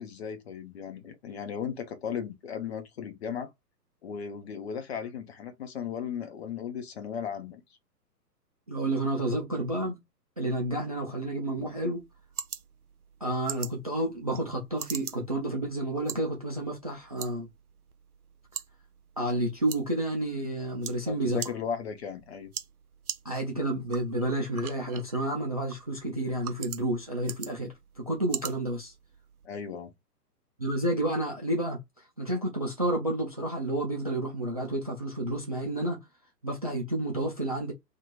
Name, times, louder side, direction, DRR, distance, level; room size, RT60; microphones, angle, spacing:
voice 1, 0.0-3.5 4.0-7.6 21.1-22.5 29.4-29.9, left 7 dB, 40° left, 1.0 m, -36 dB
voice 2, 8.7-10.0 10.4-12.0 13.2-17.5 19.2-21.4 23.2-28.9 30.6-31.8 32.2-36.0 36.4-37.7, right 1 dB, 25° right, 0.4 m, -30 dB
sound 1, 11.5-29.5, right 8 dB, 60° right, 0.8 m, -43 dB
2.9 x 2.6 x 4.1 m
figure-of-eight pair, 125°, 50 cm